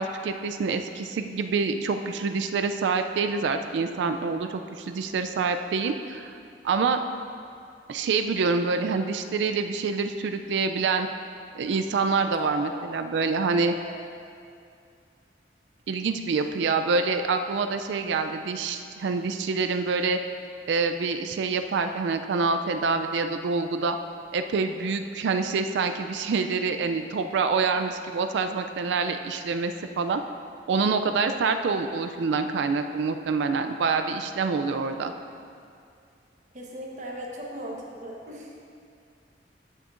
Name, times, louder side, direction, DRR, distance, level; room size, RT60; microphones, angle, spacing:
voice 1, 0.0-6.3 6.6-7.0 7.9-11.1 11.5-13.7 15.9-20.2 20.7-24.0 24.3-30.2 30.7-35.1, right 4 dB, 80° right, 7 dB, 0.3 m, -26 dB
voice 2, 12.4-12.8 13.7-13.9 35.0-35.1 36.5-38.5, right 1 dB, 40° right, -2 dB, 1.1 m, -38 dB
13.5 x 6.5 x 2.5 m, 2.4 s
head